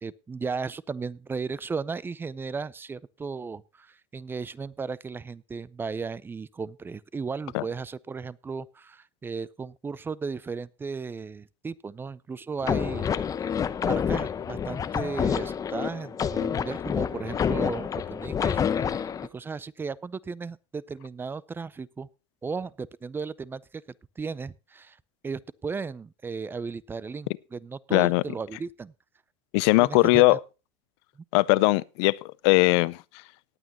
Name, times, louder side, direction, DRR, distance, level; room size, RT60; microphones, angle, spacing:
voice 1, 0.0-13.1 13.8-22.1 22.4-23.8 24.2-25.0 25.2-28.9 29.8-30.4, right 5 dB, 15° right, 0.5 m, -35 dB
sound 1, 12.6-19.3, left 7 dB, 25° left, 0.8 m, -28 dB
voice 2, 27.9-28.2 29.5-30.4 31.3-32.2 32.4-33.0, left 23 dB, 65° left, 0.6 m, -20 dB
18.5 x 8.7 x 2.9 m
supercardioid pair, 130°, 15 cm